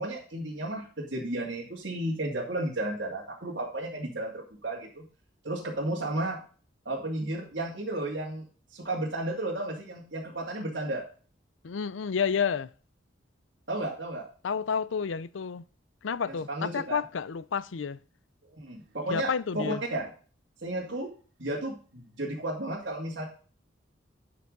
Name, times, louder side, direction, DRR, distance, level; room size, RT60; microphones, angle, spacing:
voice 1, 0.0-5.0 5.4-6.4 6.8-8.4 8.7-11.0 13.7-14.2 16.5-17.0 18.6-20.1 20.6-21.1 21.4-23.3, right 1 dB, 70° right, 2.5 m, -33 dB
voice 2, 11.6-12.7 14.4-15.6 16.0-18.0 19.1-19.8, left 6 dB, 90° left, 0.5 m, -30 dB
11.0 x 6.0 x 3.9 m
head